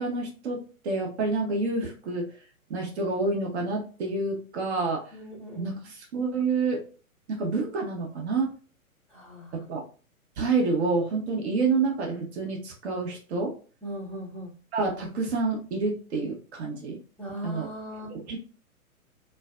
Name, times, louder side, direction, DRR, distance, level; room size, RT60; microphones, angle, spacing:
voice 1, 0.0-2.3 2.7-5.0 5.5-6.8 7.3-8.5 9.7-9.8 10.4-13.5 14.7-17.0 17.4-17.7 18.3-18.4, right 3 dB, 50° right, 1 dB, 0.9 m, -28 dB
voice 2, 5.1-5.7 9.1-9.6 13.8-14.5 17.2-18.1, equal, 5° left, -8 dB, 0.5 m, -39 dB
2.5 x 2.2 x 2.3 m, 0.38 s
hypercardioid pair, 125°, 43 cm